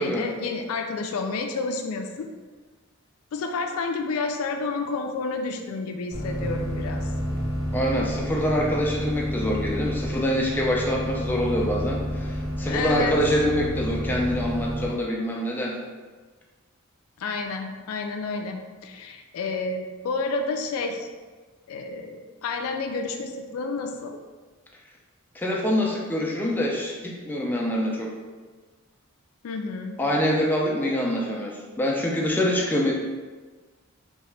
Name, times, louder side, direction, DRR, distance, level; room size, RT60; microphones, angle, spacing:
voice 1, 0.0-2.3 3.3-7.0 12.7-13.2 17.2-21.1 21.7-24.2 29.4-30.0, left 3 dB, 85° left, 4 dB, 0.3 m, -30 dB
sound 1, 6.1-14.9, equal, 60° right, 1.0 m, -30 dB
voice 2, 7.7-15.8 25.3-28.1 30.0-32.9, equal, 10° left, -3 dB, 0.3 m, -25 dB
2.8 x 2.2 x 3.1 m, 1.4 s
head